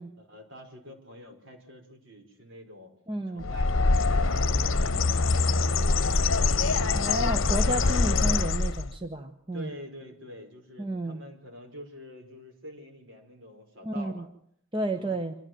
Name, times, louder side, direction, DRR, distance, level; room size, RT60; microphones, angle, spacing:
voice 1, 0.2-2.9 3.3-5.0 5.4-7.5 9.5-14.3 15.0-15.1, equal, 60° right, 3 dB, 5.4 m, -46 dB
voice 2, 3.1-3.4 6.9-9.7 10.8-11.2 13.8-14.2 14.7-15.4, right 1 dB, 25° right, 6 dB, 1.1 m, -31 dB
Bird, 3.4-9.0, left 3 dB, 65° left, 0.9 m, -24 dB
25.5 x 14.0 x 7.7 m, 0.69 s
head